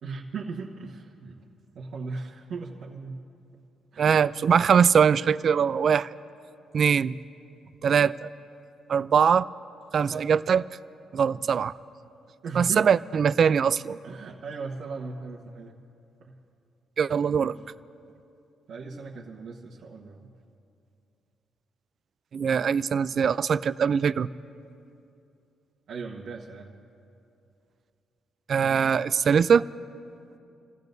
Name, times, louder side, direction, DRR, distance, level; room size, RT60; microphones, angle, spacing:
voice 1, 0.0-1.4 1.7-3.2 3.9-4.2 10.0-10.3 12.4-12.9 14.0-15.8 16.2-16.4 17.4-17.5 18.7-20.3 25.9-26.7, right 4 dB, 70° right, -4 dB, 1.2 m, -38 dB
voice 2, 4.0-6.1 6.7-7.2 7.8-8.3 8.9-9.5 9.9-10.6 11.1-11.8 12.6-14.0 17.0-17.6 22.3-24.3 28.5-29.7, right 7 dB, 55° right, 16 dB, 0.3 m, -22 dB
29.0 x 15.5 x 2.7 m, 2.6 s
cardioid pair, 90°, 0 cm